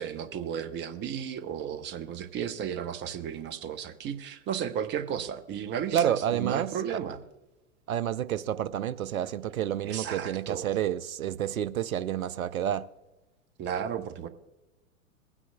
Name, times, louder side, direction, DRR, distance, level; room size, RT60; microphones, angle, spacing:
voice 1, 0.0-7.2 9.8-10.8 13.6-14.3, right 8 dB, 25° right, 0.8 m, -34 dB
voice 2, 5.9-7.0 7.9-12.9, right 10 dB, 85° right, 0.6 m, -29 dB
22.0 x 9.8 x 2.2 m
hypercardioid pair, 100°, 41 cm